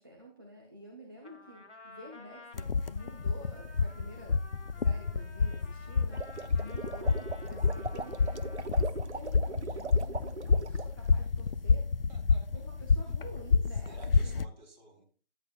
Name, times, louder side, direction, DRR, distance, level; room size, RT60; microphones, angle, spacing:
voice 1, 0.0-4.5 4.8-6.2 6.6-11.9 12.5-14.0 14.2-14.5, equal, 20° right, -2 dB, 0.6 m, -50 dB
Trumpet, 1.2-9.1, left 2 dB, 70° left, 2.5 m, -53 dB
sound 1, 2.5-14.5, left 4 dB, 50° left, 0.4 m, -29 dB
sound 2, 6.0-10.9, right 5 dB, 65° right, 0.8 m, -40 dB
voice 2, 6.4-6.8 11.4-11.5 12.1-12.9 13.8-15.0, right 2 dB, 40° right, 0 dB, 2.7 m, -55 dB
10.5 x 9.7 x 2.3 m, 0.39 s
figure-of-eight pair, 155°, 36 cm